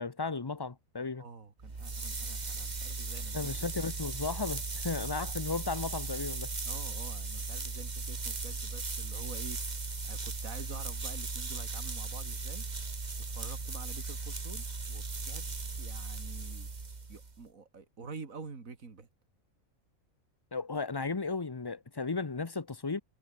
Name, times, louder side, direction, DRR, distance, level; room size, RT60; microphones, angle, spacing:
voice 1, 0.0-1.2 3.3-6.5 20.5-23.0, left 4 dB, 20° left, 0.7 m, -35 dB
voice 2, 1.1-4.0 6.6-9.6 10.0-12.7 13.3-16.7 17.1-19.1, right 4 dB, 70° right, 2.9 m, -47 dB
sound 1, 1.6-17.4, right 3 dB, 30° right, 1.7 m, -37 dB
omnidirectional pair, 1.5 m